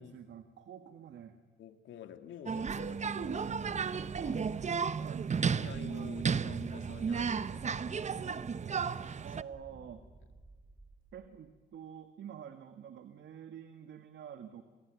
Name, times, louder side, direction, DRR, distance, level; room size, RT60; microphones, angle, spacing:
voice 1, 0.0-1.4 4.9-5.4 9.2-10.0 11.1-14.6, right 8 dB, 65° right, 8 dB, 1.9 m, -48 dB
voice 2, 1.6-5.1 5.5-8.5 9.0-9.4 9.7-9.9, left 8 dB, 75° left, 7 dB, 2.6 m, -51 dB
sound 1, 2.5-9.4, right 6 dB, 35° right, 0.9 m, -34 dB
sound 2, 9.5-11.8, right 2 dB, 20° right, 3.1 m, -56 dB
28.5 x 20.0 x 9.6 m, 1.4 s
cardioid pair, 90°, 20 cm